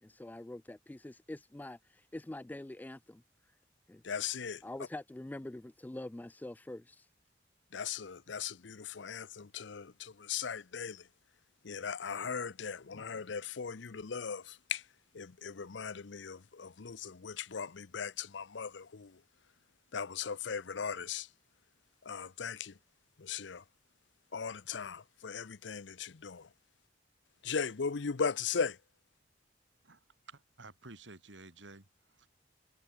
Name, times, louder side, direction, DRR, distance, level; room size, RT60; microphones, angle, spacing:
voice 1, 0.0-3.6 3.9-4.0 4.6-7.1, left 1 dB, 10° left, 0.3 m, -45 dB
voice 2, 4.0-4.6 7.7-11.1 11.6-14.9 15.1-19.2 19.9-21.3 22.0-22.8 23.2-23.6 24.3-26.5 27.4-28.8, left 6 dB, 70° left, 0.7 m, -38 dB
voice 3, 30.3-32.3, right 3 dB, 75° right, 2.8 m, -53 dB
head